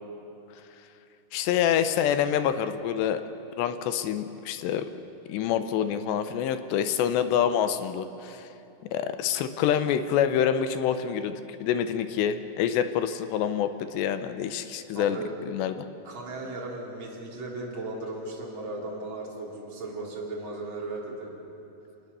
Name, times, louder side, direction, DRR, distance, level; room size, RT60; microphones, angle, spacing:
voice 1, 1.3-3.2 3.6-4.9 5.3-8.4 8.9-15.2 15.5-15.8, left 9 dB, 80° left, 10 dB, 3.0 m, -26 dB
voice 2, 14.9-15.3 16.0-21.4, right 2 dB, 30° right, -3 dB, 3.8 m, -36 dB
26.0 x 19.5 x 6.9 m, 2.8 s
omnidirectional pair, 5.0 m